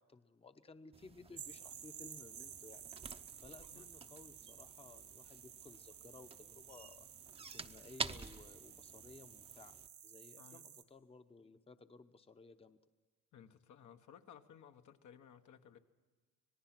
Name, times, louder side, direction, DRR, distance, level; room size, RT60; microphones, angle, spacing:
voice 1, 0.0-2.8 3.4-7.1 7.4-9.8 10.0-12.8, left 3 dB, 20° left, 9 dB, 0.8 m, -58 dB
sound 1, 0.9-9.9, right 4 dB, 20° right, 0.7 m, -50 dB
sound 2, 1.4-10.8, right 9 dB, 65° right, 1.6 m, -53 dB
voice 2, 10.4-10.7 13.3-15.8, left 8 dB, 70° left, 6 dB, 1.2 m, -58 dB
26.0 x 18.5 x 6.0 m, 1.4 s
cardioid pair, 90°, 30 cm